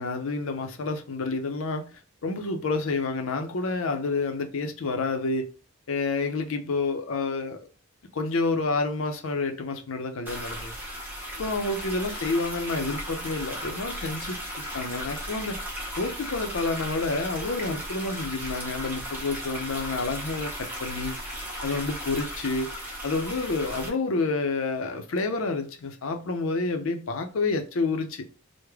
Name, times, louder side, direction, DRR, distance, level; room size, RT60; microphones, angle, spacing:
voice 1, 0.0-5.5 5.9-7.7 8.1-10.8 11.4-15.6 16.0-21.1 21.6-22.7 23.0-28.2, left 3 dB, 65° left, 0.5 m, -29 dB
sound 1, 10.3-23.9, equal, 10° right, 0.8 m, -36 dB
3.2 x 2.1 x 3.4 m
head